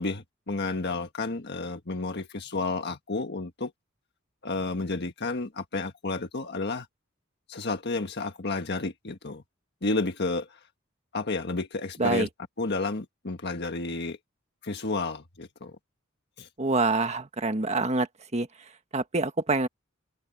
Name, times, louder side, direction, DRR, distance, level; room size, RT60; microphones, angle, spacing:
voice 1, 0.0-3.7 4.4-6.9 7.5-9.4 9.8-10.6 11.1-12.3 12.6-14.2 14.6-15.8 16.4-16.5, left 3 dB, 55° left, 1.5 m, -31 dB
voice 2, 16.6-18.1 18.3-18.5 18.9-19.7, right 3 dB, 35° right, 1.6 m, -25 dB
head